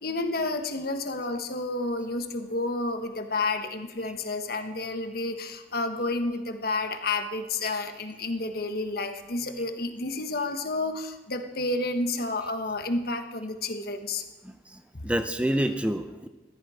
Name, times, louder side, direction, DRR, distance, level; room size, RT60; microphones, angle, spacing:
voice 1, 0.0-14.2 14.9-15.1, left 2 dB, 60° left, 7 dB, 1.2 m, -30 dB
voice 2, 14.4-16.3, right 1 dB, 5° right, 9 dB, 0.6 m, -28 dB
14.0 x 13.0 x 5.0 m, 1.2 s
head